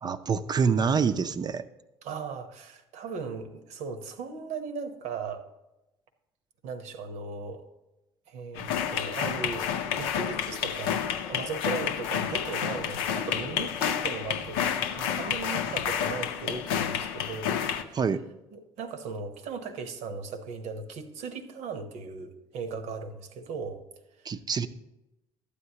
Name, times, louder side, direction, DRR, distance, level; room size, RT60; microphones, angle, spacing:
voice 1, 0.0-1.6 17.9-18.2 24.3-24.7, right 6 dB, 35° right, 11 dB, 0.5 m, -26 dB
voice 2, 2.0-5.4 6.6-7.7 8.3-11.0 11.3-18.0 18.5-23.8, right 4 dB, 65° right, 8 dB, 0.9 m, -37 dB
sound 1, 8.6-17.8, left 8 dB, 80° left, 0.5 m, -30 dB
12.0 x 8.3 x 2.8 m, 0.96 s
hypercardioid pair, 65°, 12 cm